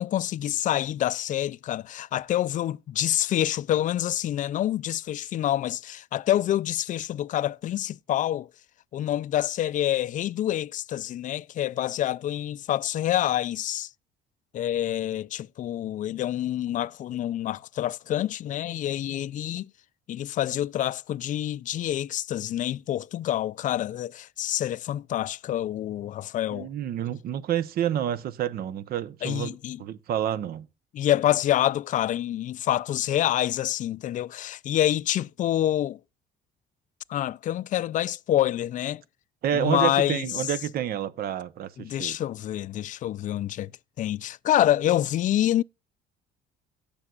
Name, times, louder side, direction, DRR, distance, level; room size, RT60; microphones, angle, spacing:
voice 1, 0.0-8.5 8.9-13.9 14.5-19.7 20.1-26.7 29.2-29.8 30.9-36.0 37.1-39.0 39.5-40.4 41.8-43.7 44.0-45.6, left 12 dB, 50° left, 0.4 m, -27 dB
voice 2, 26.5-30.7 39.4-42.2, right 10 dB, 65° right, 0.9 m, -29 dB
17.0 x 6.9 x 2.4 m
cardioid pair, 110°, 17 cm